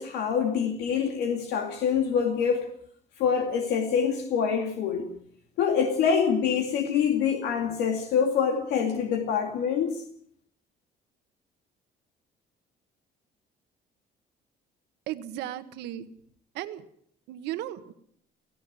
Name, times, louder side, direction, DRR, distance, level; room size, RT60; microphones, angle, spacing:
voice 1, 0.0-2.7 3.2-5.1 5.6-10.0, left 7 dB, 85° left, 2.5 m, -25 dB
voice 2, 15.1-16.1 16.5-16.8 17.3-17.9, right 13 dB, 90° right, 1.5 m, -35 dB
18.0 x 16.5 x 9.1 m
cardioid pair, 110°, 17 cm